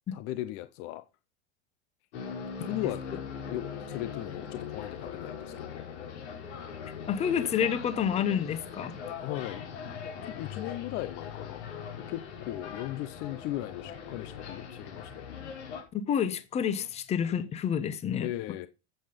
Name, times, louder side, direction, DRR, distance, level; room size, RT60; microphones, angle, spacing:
voice 1, 0.1-1.0 2.6-3.0 3.5-5.9 9.2-9.6 10.3-11.7 12.1-15.3 18.2-18.7, left 15 dB, 35° left, 0.6 m, -37 dB
sound 1, 2.1-15.8, left 6 dB, 75° left, 5.1 m, -41 dB
voice 2, 7.1-9.0 15.9-18.3, left 8 dB, 20° left, 1.0 m, -29 dB
9.2 x 7.8 x 5.2 m
supercardioid pair, 160°, 34 cm